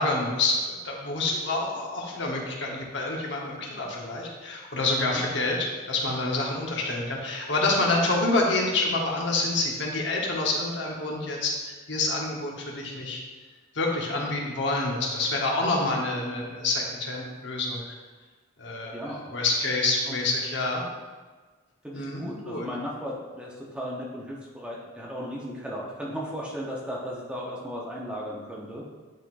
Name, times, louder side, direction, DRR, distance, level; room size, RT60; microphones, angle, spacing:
voice 1, 0.0-13.2 13.7-17.9 18.6-19.0 19.3-20.8 21.9-22.7, left 2 dB, 60° left, -1 dB, 1.0 m, -27 dB
voice 2, 21.8-28.8, equal, 5° right, -4 dB, 0.8 m, -36 dB
10.0 x 3.7 x 2.5 m, 1.3 s
head